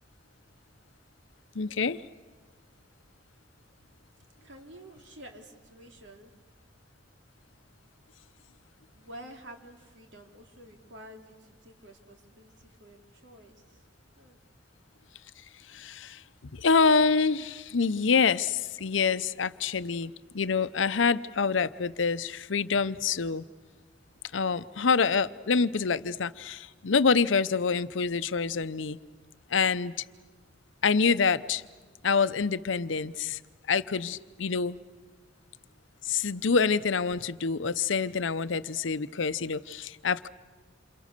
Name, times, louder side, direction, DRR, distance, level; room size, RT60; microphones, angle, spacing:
voice 1, 1.5-2.0 15.7-23.4 24.3-29.0 29.5-29.9 30.8-31.6 32.0-33.4 33.7-34.8 36.0-40.3, left 5 dB, 85° left, 14 dB, 0.7 m, -26 dB
voice 2, 4.4-6.3 8.9-13.8 14.2-14.4, right 1 dB, 70° right, 4 dB, 3.0 m, -50 dB
28.0 x 28.0 x 6.7 m, 1.4 s
head